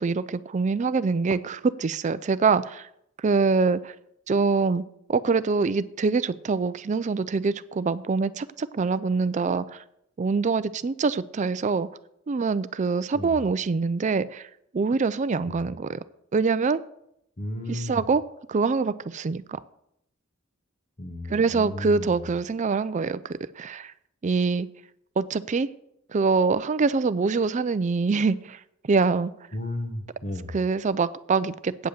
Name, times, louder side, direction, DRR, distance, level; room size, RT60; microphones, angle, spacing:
voice 1, 0.0-2.9 3.2-3.9 4.3-4.8 5.1-9.8 10.2-11.9 12.3-14.5 14.7-16.0 16.3-16.8 17.7-18.2 18.5-19.6 21.3-23.9 24.2-24.7 25.2-25.7 26.1-28.6 28.8-29.3 30.5-31.9, right 4 dB, 35° right, 15 dB, 0.4 m, -24 dB
voice 2, 17.4-18.0 21.0-22.2 29.5-30.5, left 1 dB, 35° left, 4 dB, 1.4 m, -34 dB
9.0 x 7.9 x 6.7 m, 0.76 s
head